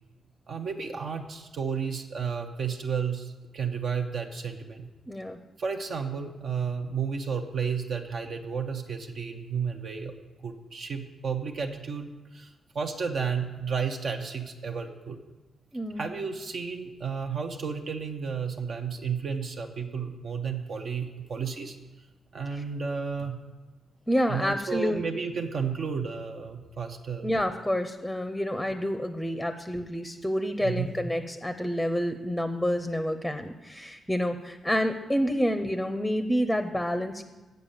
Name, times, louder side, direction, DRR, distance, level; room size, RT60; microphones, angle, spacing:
voice 1, 0.5-4.9 5.6-10.1 10.4-15.2 16.0-21.8 22.3-23.4 24.3-27.3 30.6-30.9, right 6 dB, 65° right, 3 dB, 0.9 m, -32 dB
voice 2, 5.1-5.4 15.7-16.0 24.1-25.0 27.2-37.2, equal, 5° left, 7 dB, 0.7 m, -28 dB
7.8 x 6.8 x 7.1 m, 1.2 s
cardioid pair, 90°, 0 cm